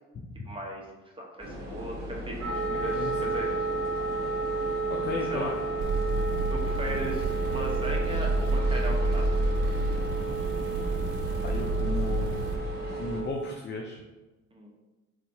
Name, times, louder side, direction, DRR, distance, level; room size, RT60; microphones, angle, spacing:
voice 1, 0.5-0.8 1.2-3.6 5.3-5.5 6.5-9.4 14.5-14.7, right 1 dB, 15° right, -1 dB, 0.9 m, -37 dB
sound 1, 1.4-13.2, left 1 dB, 35° right, 1.2 m, -38 dB
sound 2, 2.4-13.4, right 4 dB, 5° left, 1.1 m, -33 dB
voice 2, 4.9-5.5 11.4-12.4 12.9-14.0, left 3 dB, 40° left, 1 dB, 0.4 m, -35 dB
sound 3, 5.8-12.6, right 2 dB, 80° right, 0.5 m, -29 dB
4.5 x 2.8 x 2.7 m, 1.1 s
cardioid pair, 90°, 30 cm